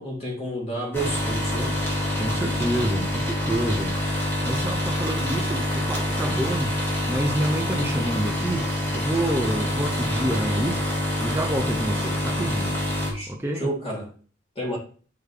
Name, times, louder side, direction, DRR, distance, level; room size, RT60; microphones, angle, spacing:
voice 1, 0.0-1.8 13.1-14.1 14.5-14.8, right 1 dB, 30° left, 2.9 m, -31 dB
sound 1, 0.9-13.1, left 1 dB, 10° left, 2.0 m, -26 dB
voice 2, 2.2-4.2 4.4-6.8 7.1-10.8 11.2-12.8 13.3-13.7, right 1 dB, 10° right, 0.6 m, -28 dB
6.8 x 4.8 x 3.3 m
head